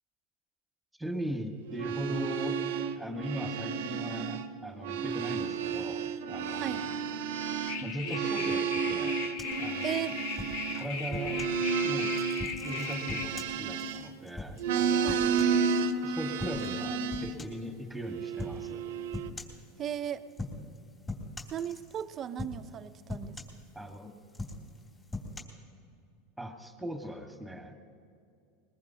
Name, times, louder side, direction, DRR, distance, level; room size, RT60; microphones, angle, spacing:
voice 1, 1.0-2.6 3.0-7.0 7.8-9.2 9.6-10.1 10.7-11.4 11.8-12.1 12.6-15.3 16.0-18.8 23.7-24.1 26.4-27.8, equal, ahead, 4 dB, 1.7 m, -39 dB
sound 1, 1.7-4.5 4.7-14.2 14.6-17.4 18.0-19.3, right 6 dB, 85° right, 0.9 m, -32 dB
sound 2, 7.7-13.3, left 5 dB, 65° left, 1.4 m, -38 dB
sound 3, 9.4-11.6 12.1-15.9 16.4-16.8 17.1-17.7 18.4-18.6 19.1-19.6 20.3-20.8 21.1-22.1 22.4-22.8 23.1-24.0 24.3-25.4, left 2 dB, 20° left, 3.0 m, -41 dB
voice 2, 9.8-10.2 15.0-15.3 19.8-20.3 21.5-23.6, right 9 dB, 35° right, 11 dB, 0.7 m, -36 dB
21.5 x 21.0 x 2.9 m, 2.4 s
supercardioid pair, 120°, 0 cm